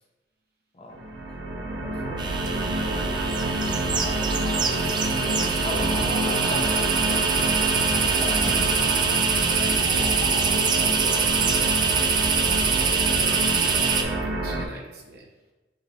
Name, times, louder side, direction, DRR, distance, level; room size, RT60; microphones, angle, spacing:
sound 1, 0.9-14.7, right 1 dB, 90° right, 0.6 m, -28 dB
voice 1, 1.4-4.0, equal, 30° left, 1 dB, 0.5 m, -46 dB
sound 2, 2.2-14.0, right 5 dB, 25° right, 0.3 m, -24 dB
Chicken rooster, 3.9-10.6, left 1 dB, 75° left, 1.4 m, -38 dB
voice 2, 4.8-7.1 7.5-12.0 12.6-15.3, right 2 dB, 60° right, -1 dB, 0.9 m, -41 dB
6.2 x 2.2 x 3.3 m, 1.1 s
head